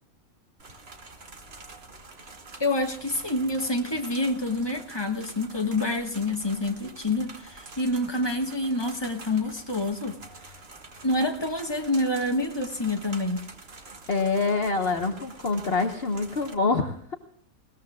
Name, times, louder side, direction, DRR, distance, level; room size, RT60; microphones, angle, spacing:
sound 1, 0.6-16.5, right 3 dB, 45° right, 1.8 m, -46 dB
voice 1, 2.6-10.2 11.0-13.4, left 2 dB, 20° left, 4 dB, 1.4 m, -27 dB
voice 2, 14.1-17.1, left 3 dB, 45° left, 4 dB, 1.3 m, -26 dB
20.5 x 19.0 x 2.4 m, 0.62 s
omnidirectional pair, 1.5 m